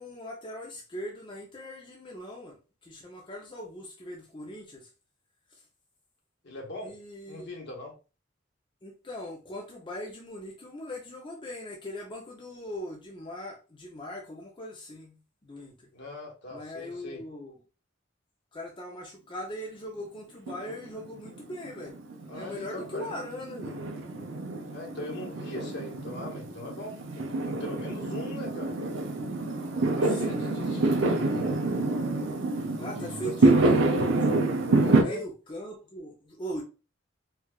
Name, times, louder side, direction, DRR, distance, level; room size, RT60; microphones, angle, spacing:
voice 1, 0.0-4.9 6.8-7.5 8.8-15.7 16.5-17.6 18.5-22.0 22.4-23.8 30.0-30.5 32.8-34.5 34.9-36.6, equal, 25° left, 0.5 m, -40 dB
voice 2, 6.4-6.9 7.3-7.9 15.9-17.2 22.3-23.3 24.7-28.8 29.8-31.6 32.6-33.8 34.7-35.2, left 2 dB, 60° left, 1.1 m, -40 dB
Fireworks, 20.5-35.0, right 2 dB, 70° right, 0.6 m, -27 dB
4.5 x 2.3 x 2.3 m
head